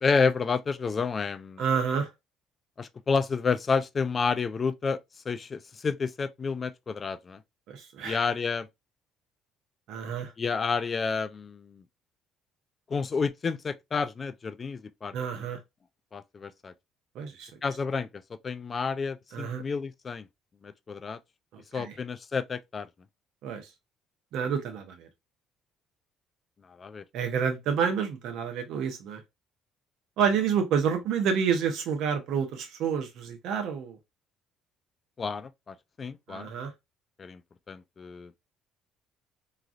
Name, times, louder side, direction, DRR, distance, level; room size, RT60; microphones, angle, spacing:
voice 1, 0.0-1.6 2.8-5.0 5.3-7.4 8.0-8.7 10.4-11.8 12.9-15.2 16.1-16.7 17.6-20.3 20.6-21.2 21.7-22.9 26.8-27.0 35.2-36.5 37.2-37.4 37.7-38.3, left 5 dB, 35° left, 0.4 m, -30 dB
voice 2, 1.6-2.1 7.7-8.2 9.9-10.3 15.1-15.6 17.1-17.6 19.3-19.6 21.5-22.0 23.4-23.7 24.3-25.1 27.1-29.2 30.2-34.0 36.3-36.7, right 7 dB, 70° right, 0.9 m, -29 dB
3.0 x 2.4 x 2.5 m
supercardioid pair, 75°, 0 cm